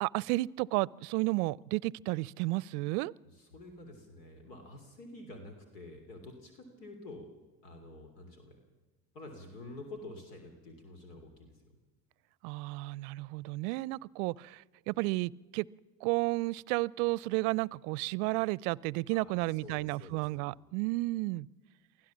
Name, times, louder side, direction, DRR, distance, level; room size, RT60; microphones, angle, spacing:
voice 1, 0.0-3.1 12.4-15.7 16.0-21.5, right 22 dB, 70° right, 25 dB, 0.5 m, -32 dB
voice 2, 3.4-7.3 7.6-8.6 9.1-11.5 19.1-20.4, left 2 dB, 80° left, 5 dB, 3.2 m, -48 dB
23.5 x 15.5 x 7.3 m, 1.2 s
hypercardioid pair, 70°, 47 cm